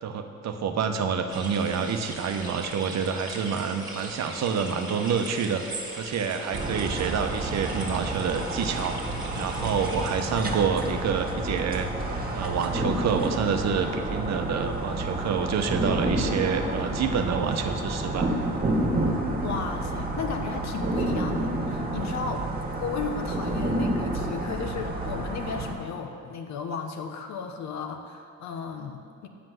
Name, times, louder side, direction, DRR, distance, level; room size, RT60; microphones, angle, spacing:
voice 1, 0.0-5.6 6.0-9.0 9.4-11.9 12.3-18.3, right 6 dB, 60° right, 6 dB, 0.8 m, -28 dB
sound 1, 1.3-10.2, right 2 dB, 15° right, 1.7 m, -39 dB
sound 2, 6.5-25.7, right 1 dB, 30° right, 1.6 m, -29 dB
voice 2, 19.1-22.5 22.8-29.3, left 5 dB, 65° left, 5 dB, 1.0 m, -35 dB
7.8 x 6.0 x 7.7 m, 2.4 s
cardioid pair, 90°, 30 cm